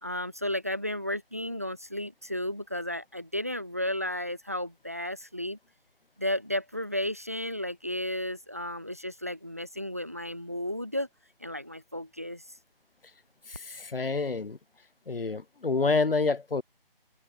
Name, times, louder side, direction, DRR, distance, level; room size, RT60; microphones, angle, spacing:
voice 1, 0.0-5.6 6.2-11.1 11.4-12.4, left 1 dB, 15° right, 0.5 m, -33 dB
voice 2, 13.5-14.6 15.1-16.6, left 4 dB, 70° left, 2.7 m, -28 dB
figure-of-eight pair, 160°, 29 cm